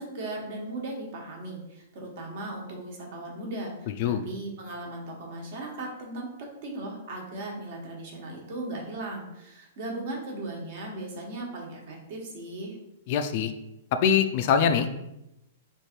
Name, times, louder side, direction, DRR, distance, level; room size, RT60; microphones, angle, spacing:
voice 1, 0.0-12.8, right 2 dB, 50° right, -1 dB, 1.2 m, -37 dB
voice 2, 13.1-13.5 14.0-14.9, left 7 dB, 45° left, 8 dB, 0.3 m, -23 dB
3.3 x 2.5 x 4.3 m, 0.89 s
hypercardioid pair, 150°, 0 cm